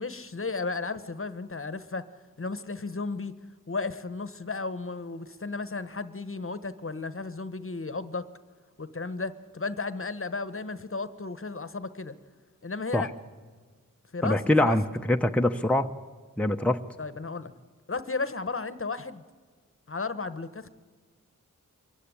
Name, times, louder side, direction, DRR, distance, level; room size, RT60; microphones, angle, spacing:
voice 1, 0.0-2.0 2.4-3.3 3.7-8.3 8.8-12.1 12.6-13.1 14.1-14.8 17.0-17.5 17.9-19.2 19.9-20.7, left 3 dB, 40° left, 14 dB, 1.1 m, -34 dB
voice 2, 14.2-15.9 16.4-16.8, left 1 dB, 5° left, 5 dB, 0.8 m, -24 dB
25.0 x 15.5 x 9.9 m, 1.5 s
wide cardioid pair, 75°, 33 cm